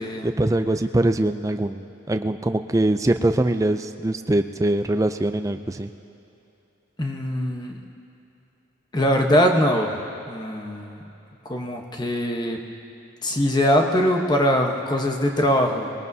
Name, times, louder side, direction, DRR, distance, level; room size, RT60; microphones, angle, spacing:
voice 1, 0.2-5.9, right 1 dB, 15° right, 8 dB, 0.4 m, -22 dB
voice 2, 7.0-7.8 8.9-10.0 10.3-11.0 11.5-12.6 13.2-15.9, equal, 20° left, 2 dB, 1.0 m, -22 dB
21.5 x 18.0 x 2.7 m, 2.9 s
head